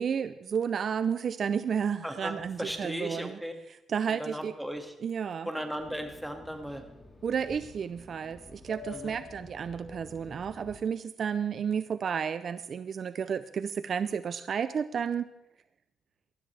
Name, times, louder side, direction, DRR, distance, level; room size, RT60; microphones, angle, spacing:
voice 1, 0.0-3.4 3.9-4.5 5.0-5.5 7.2-15.3, right 7 dB, 50° right, 13 dB, 0.5 m, -32 dB
voice 2, 2.0-3.5 4.1-4.9 5.4-6.8 8.9-9.2, equal, ahead, 4 dB, 2.0 m, -36 dB
Fixed-wing aircraft airplane, 5.8-10.8, left 4 dB, 25° left, 3.5 m, -49 dB
20.0 x 12.5 x 3.4 m, 0.81 s
cardioid pair, 90°, 0 cm